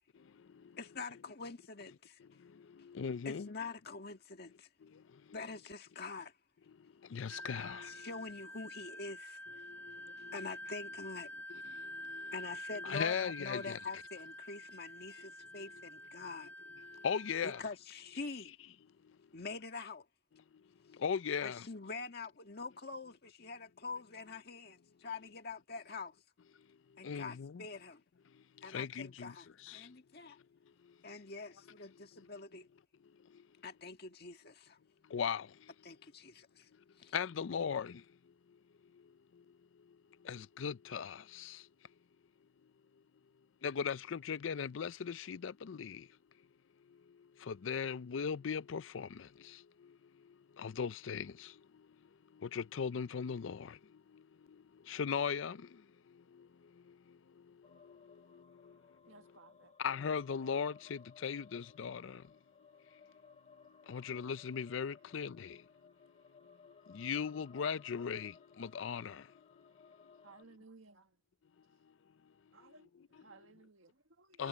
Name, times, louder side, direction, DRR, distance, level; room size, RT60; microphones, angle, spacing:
voice 1, 0.8-2.2 3.2-4.7 5.3-6.3 7.8-9.4 10.3-11.4 12.3-16.5 17.4-18.5 19.3-20.0 21.4-26.1 27.0-28.0 28.6-30.4 31.0-32.7 33.6-34.8 35.8-36.7 37.0-37.1, left 4 dB, 50° left, 1.7 m, -45 dB
voice 2, 2.9-3.5 7.1-7.9 12.8-13.8 17.0-17.6 21.0-21.6 27.0-27.6 28.7-29.3 29.7-29.8 35.1-35.5 37.1-38.0 40.3-41.6 43.6-46.0 47.5-49.1 50.6-51.3 52.5-53.7 54.9-55.6 59.8-62.2 63.9-65.6 66.9-68.3 68.6-69.2 74.4-74.5, left 6 dB, 70° left, 0.4 m, -37 dB
Wind instrument woodwind instrument, 7.3-17.7, left 1 dB, 10° left, 1.7 m, -48 dB
sound 1, 57.6-70.4, left 5 dB, 35° left, 1.5 m, -62 dB
voice 3, 59.1-59.7 70.2-71.2 72.5-74.5, right 3 dB, 80° right, 1.7 m, -59 dB
head